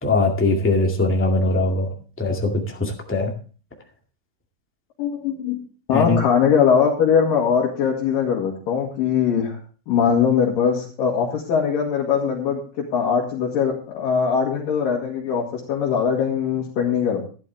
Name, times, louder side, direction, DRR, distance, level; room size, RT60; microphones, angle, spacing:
voice 1, 0.0-1.9 2.2-3.3 5.9-6.2, left 2 dB, 10° left, 0 dB, 0.7 m, -21 dB
voice 2, 5.0-5.6 5.9-9.6 9.9-17.2, left 7 dB, 65° left, -3 dB, 3.3 m, -21 dB
12.5 x 11.5 x 3.4 m, 0.38 s
omnidirectional pair, 4.4 m